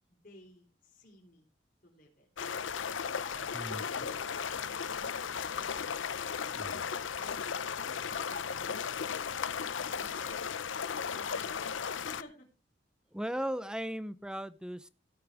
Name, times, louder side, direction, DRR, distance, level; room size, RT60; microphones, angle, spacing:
voice 1, 0.1-1.5 1.8-2.3 2.9-6.0 7.1-7.6 8.1-8.8 9.8-12.5, left 2 dB, 50° left, -1 dB, 4.2 m, -53 dB
sound 1, 2.4-12.2, left 6 dB, 90° left, 0.7 m, -36 dB
voice 2, 6.5-6.9 13.1-14.9, equal, 5° right, 15 dB, 0.7 m, -37 dB
17.0 x 8.5 x 3.5 m, 0.32 s
head